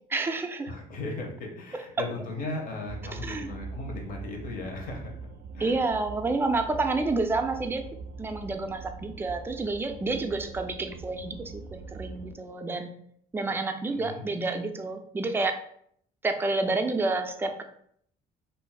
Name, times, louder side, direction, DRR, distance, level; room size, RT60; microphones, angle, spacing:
voice 1, 0.1-0.7 3.1-3.5 5.6-7.8 8.2-12.9 13.3-15.6 16.2-17.6, right 3 dB, 15° right, 5 dB, 0.3 m, -29 dB
voice 2, 0.7-5.1 5.5-5.7 13.9-14.3, left 2 dB, 55° left, 1 dB, 0.9 m, -37 dB
sound 1, 2.9-12.3, right 4 dB, 80° right, 0.4 m, -42 dB
2.5 x 2.0 x 3.9 m, 0.67 s
cardioid pair, 110°, 17 cm